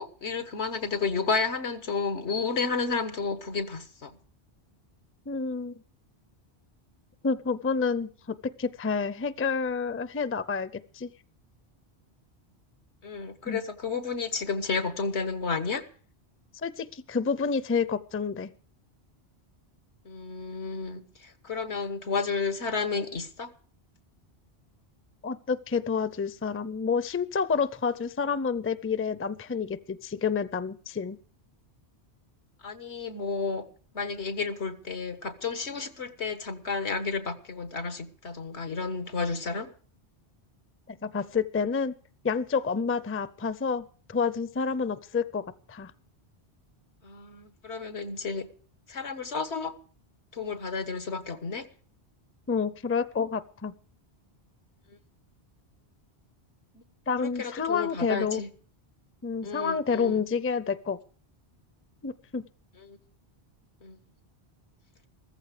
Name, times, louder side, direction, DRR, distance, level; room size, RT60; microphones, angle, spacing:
voice 1, 0.0-4.2 13.0-15.9 20.1-23.5 32.6-33.7 33.9-39.7 47.0-48.5 48.9-49.8 50.3-51.7 56.7-56.8 57.2-58.5 59.4-60.3 62.8-63.0 63.8-64.0, left 4 dB, 90° left, 1.7 m, -32 dB
voice 2, 5.3-5.7 7.2-11.1 13.5-13.6 16.6-18.5 25.2-31.2 40.9-41.9 42.2-45.9 52.5-53.7 57.1-58.4 59.2-61.0 62.0-62.4, left 5 dB, 20° left, 0.4 m, -29 dB
15.0 x 14.5 x 5.0 m
omnidirectional pair, 1.1 m